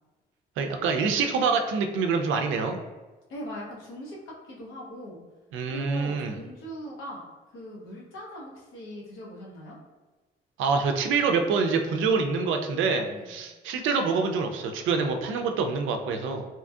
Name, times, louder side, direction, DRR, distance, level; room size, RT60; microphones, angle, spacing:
voice 1, 0.6-2.8 5.5-6.4 10.6-16.5, right 5 dB, 80° right, 5 dB, 0.4 m, -26 dB
voice 2, 3.3-5.2 5.7-7.3 7.5-9.8 13.1-13.4, equal, 85° left, -4 dB, 0.8 m, -40 dB
2.8 x 2.6 x 2.3 m, 1.2 s
cardioid pair, 90°, 20 cm